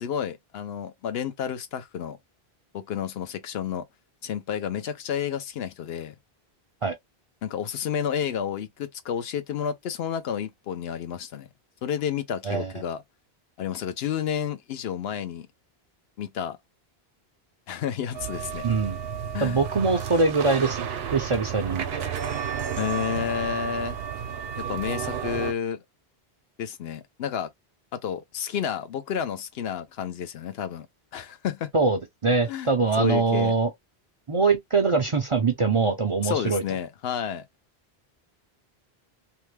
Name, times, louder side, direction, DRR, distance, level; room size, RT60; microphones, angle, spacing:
voice 1, 0.0-2.2 2.7-3.8 4.2-6.1 7.4-11.5 11.8-13.0 13.6-15.5 16.2-16.6 17.7-18.7 19.3-19.6 22.8-24.0 24.6-25.8 26.6-27.5 28.0-30.9 31.1-31.7 32.5-32.7 33.0-33.6 36.2-37.4, left 8 dB, 75° left, 0.9 m, -30 dB
sound 1, 18.1-25.5, right 8 dB, 75° right, 0.8 m, -32 dB
voice 2, 18.6-19.0 19.4-22.0 31.7-33.7 34.3-36.6, right 4 dB, 45° right, 0.4 m, -23 dB
2.9 x 2.2 x 3.2 m
omnidirectional pair, 1.0 m